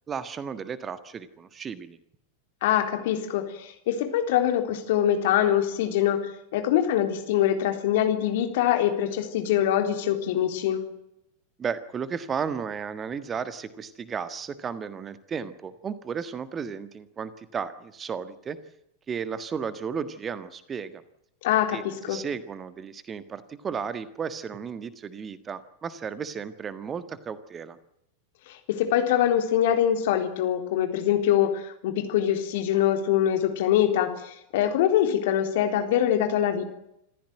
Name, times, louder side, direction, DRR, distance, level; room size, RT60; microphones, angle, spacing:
voice 1, 0.1-2.0 11.6-18.6 19.1-21.0 21.7-27.8, right 6 dB, 20° right, 13 dB, 1.6 m, -34 dB
voice 2, 2.6-6.2 6.5-10.8 21.4-22.2 28.5-36.6, left 10 dB, 50° left, 6 dB, 3.8 m, -24 dB
26.5 x 15.0 x 9.2 m, 0.81 s
figure-of-eight pair, 90°, 0 cm